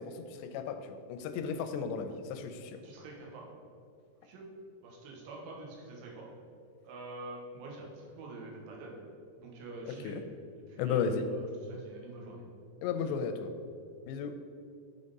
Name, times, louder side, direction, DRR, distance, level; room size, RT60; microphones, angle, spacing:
voice 1, 0.0-2.8 10.0-10.2 10.8-11.3 12.8-13.5 14.1-14.3, left 6 dB, 85° left, 8 dB, 2.8 m, -34 dB
voice 2, 2.8-3.5 4.2-4.5 4.8-6.3 6.8-9.0 9.4-10.2 10.7-12.5 12.9-13.2, right 2 dB, 80° right, -2 dB, 3.4 m, -46 dB
10.0 x 4.1 x 5.3 m, 2.4 s
omnidirectional pair, 4.9 m